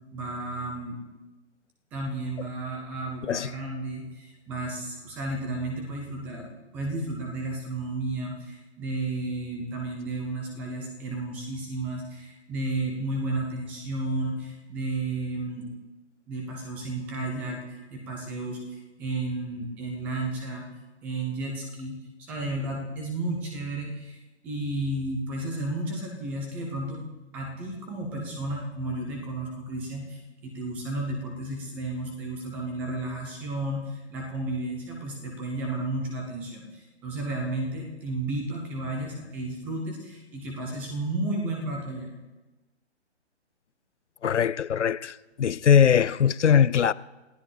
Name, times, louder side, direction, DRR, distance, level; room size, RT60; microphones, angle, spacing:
voice 1, 0.1-1.0 1.9-6.5 6.7-15.7 16.3-20.7 21.0-22.0 22.3-24.2 24.4-27.0 27.3-42.1, right 2 dB, 5° right, 0.5 m, -32 dB
voice 2, 3.2-3.5 44.2-46.9, left 8 dB, 75° left, 0.6 m, -21 dB
27.5 x 15.5 x 3.3 m
figure-of-eight pair, 145°, 35 cm